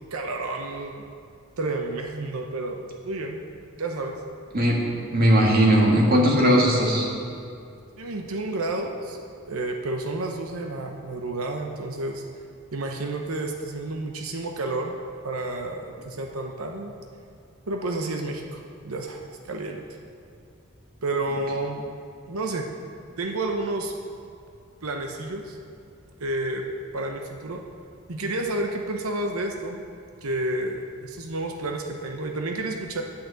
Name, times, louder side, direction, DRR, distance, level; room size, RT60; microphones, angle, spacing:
voice 1, 0.1-1.1 1.6-3.4 3.8-4.2 8.0-9.2 9.5-12.2 12.7-15.0 15.2-16.9 17.7-19.2 19.5-19.8 21.0-21.8 22.3-22.7 23.2-23.9 24.8-25.6 26.2-26.7 26.9-27.6 28.1-29.8 30.2-33.0, right 2 dB, 85° right, 2 dB, 0.8 m, -30 dB
voice 2, 5.1-7.1, equal, 45° right, -2 dB, 1.8 m, -18 dB
8.5 x 6.5 x 8.0 m, 2.5 s
head